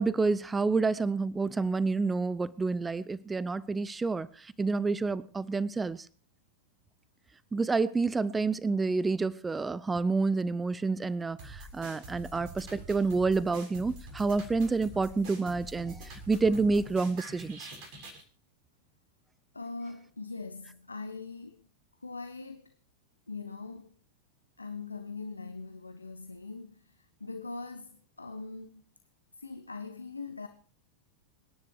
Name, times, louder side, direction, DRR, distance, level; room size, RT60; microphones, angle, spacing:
voice 1, 0.0-6.1 7.5-17.7, right 4 dB, 10° right, 0.7 m, -29 dB
sound 1, 11.4-18.2, right 1 dB, 45° right, 7.0 m, -46 dB
voice 2, 19.5-21.7 22.0-22.8 23.3-24.0 24.6-28.8 29.3-30.5, left 4 dB, 80° left, 1.2 m, -42 dB
26.5 x 11.0 x 4.7 m
figure-of-eight pair, 90°, 0 cm